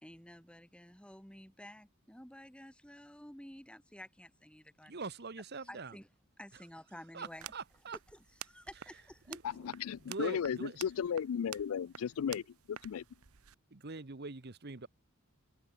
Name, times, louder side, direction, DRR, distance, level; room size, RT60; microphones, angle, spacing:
voice 1, 0.0-4.9 5.6-6.1 6.4-7.5 8.1-9.7, left 1 dB, 5° left, 2.2 m, -52 dB
voice 2, 4.9-6.0 7.1-8.0 9.3-9.4 9.9-10.8 13.7-14.9, right 3 dB, 45° right, 1.1 m, -43 dB
sound 1, 7.2-13.6, right 10 dB, 80° right, 1.0 m, -51 dB
voice 3, 9.6-12.4 12.7-13.0, left 7 dB, 70° left, 0.3 m, -35 dB
head